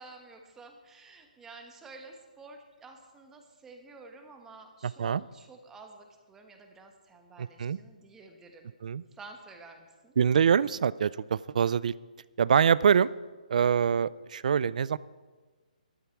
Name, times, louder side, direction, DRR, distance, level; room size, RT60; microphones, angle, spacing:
voice 1, 0.0-8.7 9.1-10.1, right 3 dB, 10° right, 4 dB, 1.2 m, -51 dB
voice 2, 4.8-5.2 7.4-7.8 8.8-9.0 10.2-11.9 12.4-13.1 13.5-15.0, right 7 dB, 60° right, 20 dB, 0.4 m, -24 dB
12.5 x 12.5 x 4.6 m, 1.3 s
hypercardioid pair, 155°, 5 cm